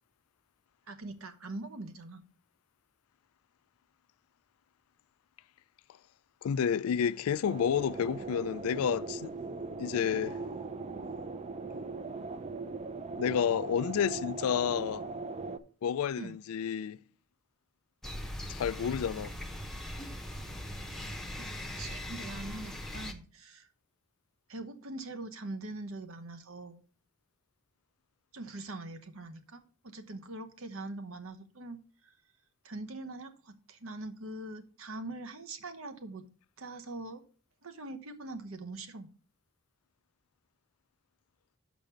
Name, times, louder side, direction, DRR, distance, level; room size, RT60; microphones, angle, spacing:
voice 1, 0.9-2.2 16.2-16.4 21.4-21.5 21.8-23.7 24.5-26.8 28.3-31.8 32.0-32.1 32.6-36.2 36.6-37.2 37.6-39.1, right 2 dB, 70° right, 1.0 m, -43 dB
voice 2, 6.4-9.3 9.8-10.4 13.2-15.1 15.8-17.0 18.5-19.4, left 8 dB, 80° left, 0.3 m, -30 dB
sound 1, 7.4-15.6, right 3 dB, 30° right, 0.5 m, -39 dB
sound 2, 18.0-23.1, left 1 dB, ahead, 0.8 m, -40 dB
6.1 x 5.1 x 6.8 m
head